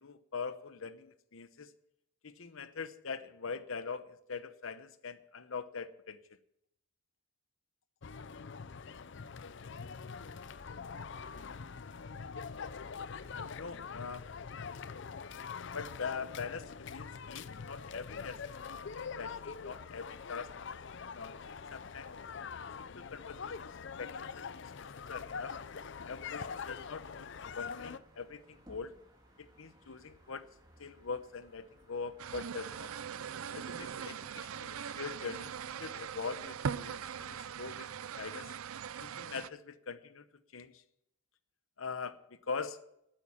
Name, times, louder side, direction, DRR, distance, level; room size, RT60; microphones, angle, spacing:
voice 1, 0.0-1.7 2.2-6.4 13.3-14.3 15.7-20.7 21.1-22.1 22.8-24.5 24.8-25.6 26.1-29.0 29.4-30.5 30.8-33.0 33.5-37.9 38.2-38.6 39.0-40.3 40.5-40.8 41.8-42.8, left 5 dB, 75° left, 13 dB, 0.8 m, -43 dB
sound 1, 8.0-28.0, left 5 dB, 55° left, 0.5 m, -44 dB
sound 2, 26.0-37.7, right 1 dB, 20° right, 2.1 m, -62 dB
sound 3, 32.2-39.5, right 7 dB, 85° right, 0.5 m, -41 dB
12.5 x 8.9 x 7.2 m, 0.79 s
head